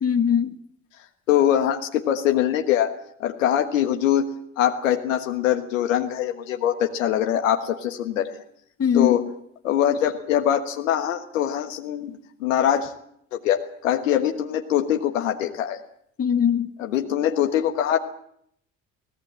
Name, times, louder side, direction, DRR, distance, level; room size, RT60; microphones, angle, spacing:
voice 1, 0.0-0.5 8.8-9.3 16.2-16.7, left 8 dB, 35° left, 9 dB, 1.9 m, -21 dB
voice 2, 1.3-2.9 3.2-4.2 4.6-8.3 8.9-9.3 9.6-12.9 13.3-15.8 16.9-18.0, left 10 dB, 75° left, 4 dB, 1.5 m, -23 dB
23.0 x 18.0 x 7.6 m, 0.69 s
figure-of-eight pair, 50°, 39 cm